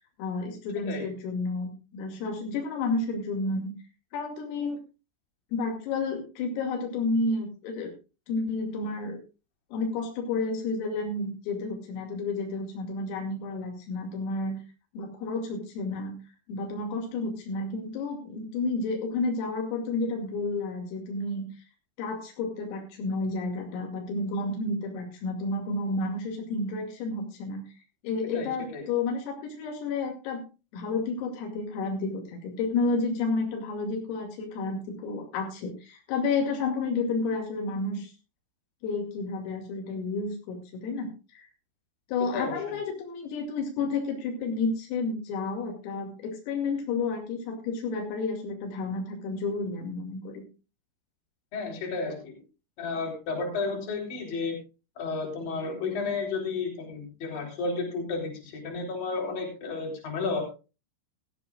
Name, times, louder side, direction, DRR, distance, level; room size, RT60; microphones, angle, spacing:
voice 1, 0.2-3.7 4.1-4.8 5.5-7.9 8.3-9.2 9.7-14.6 14.9-16.2 16.5-21.5 22.0-27.6 28.0-30.4 30.7-38.1 38.8-41.5 42.1-50.5, left 3 dB, 85° left, 2 dB, 5.1 m, -31 dB
voice 2, 0.8-1.1 28.3-28.9 42.3-42.6 51.5-52.4 52.8-54.6 55.0-60.4, left 4 dB, 45° left, 1 dB, 5.3 m, -32 dB
17.0 x 14.0 x 2.4 m, 0.31 s
omnidirectional pair, 5.9 m